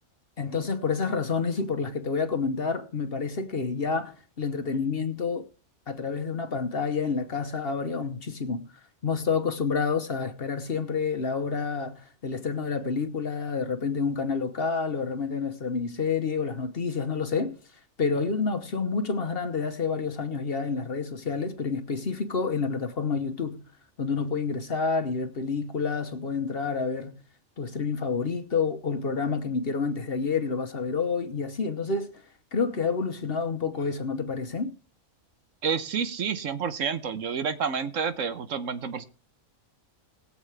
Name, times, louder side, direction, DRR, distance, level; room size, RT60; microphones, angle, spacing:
voice 1, 0.4-5.5 5.9-8.7 9.0-17.6 18.0-23.6 24.0-27.2 27.6-32.1 32.5-34.7, left 5 dB, 45° left, 1.1 m, -29 dB
voice 2, 35.6-39.0, right 6 dB, 65° right, 1.2 m, -29 dB
21.0 x 7.5 x 3.3 m
omnidirectional pair, 1.5 m